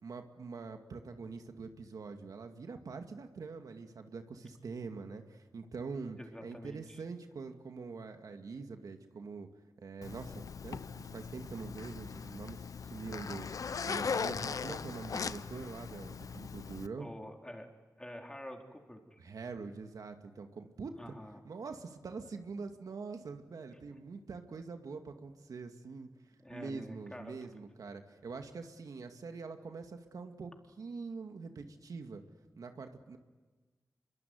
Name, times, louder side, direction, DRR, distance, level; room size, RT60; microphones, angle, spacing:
voice 1, 0.0-9.5 9.8-13.5 13.8-17.1 19.2-21.1 21.4-26.1 26.5-30.5 30.8-32.2 32.6-33.2, right 4 dB, 75° right, 6 dB, 2.3 m, -44 dB
voice 2, 6.2-7.0 17.0-17.7 18.0-19.2 21.0-21.4 23.9-24.0 26.4-27.6, equal, 10° left, 3 dB, 4.2 m, -48 dB
Zipper (clothing), 10.0-16.9, left 5 dB, 70° left, 0.8 m, -39 dB
25.5 x 23.0 x 9.5 m, 1.3 s
cardioid pair, 65°, 6 cm